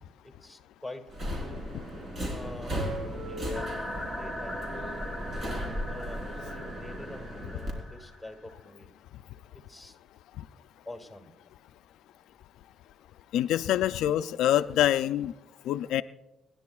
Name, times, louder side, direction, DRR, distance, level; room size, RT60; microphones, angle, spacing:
voice 1, 0.2-1.0 2.2-3.7 4.2-4.9 5.8-6.2 6.5-8.9 9.7-10.0 10.9-11.3, left 2 dB, ahead, 3 dB, 2.1 m, -45 dB
Subway metro underground, 1.1-7.7, equal, 45° right, 3.6 m, -36 dB
sound 1, 3.5-8.5, equal, 15° right, 3.0 m, -40 dB
voice 2, 13.3-15.3 15.7-16.0, left 12 dB, 85° left, 12 dB, 0.3 m, -25 dB
27.0 x 10.0 x 2.3 m, 0.93 s
cardioid pair, 90°, 0 cm